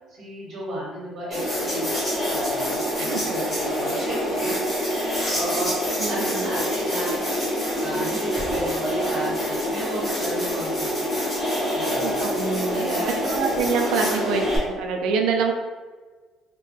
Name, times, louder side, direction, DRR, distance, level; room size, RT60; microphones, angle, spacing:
voice 1, 0.1-2.0 2.3-4.6 5.3-5.7 6.1-7.2 7.8-11.3 11.7-12.3 12.7-13.2 13.7-14.3, right 1 dB, 35° right, -7 dB, 1.1 m, -33 dB
sound 1, 1.3-14.6, equal, 20° left, 1.0 m, -26 dB
voice 2, 3.0-3.3 6.0-6.5 12.0-14.5 14.8-15.5, right 5 dB, 70° right, 3 dB, 0.4 m, -26 dB
2.9 x 2.1 x 3.1 m, 1.4 s
cardioid pair, 170°, 0 cm